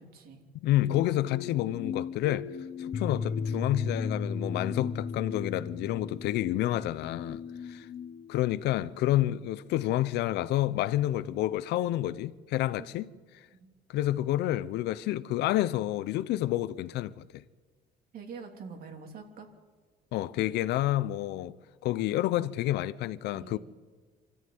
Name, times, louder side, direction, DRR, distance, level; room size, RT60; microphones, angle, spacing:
voice 1, 0.0-0.4 12.8-12.9 13.5-13.7 18.1-19.5 23.3-23.6, right 5 dB, 60° right, 3.3 m, -45 dB
voice 2, 0.5-2.5 2.8-7.4 7.7-7.9 8.3-13.1 13.9-17.4 20.1-21.5 21.8-23.6, left 14 dB, 80° left, 0.8 m, -29 dB
sound 1, 0.8-8.9, left 5 dB, 45° left, 1.1 m, -36 dB
26.0 x 13.5 x 9.4 m
cardioid pair, 110°, 17 cm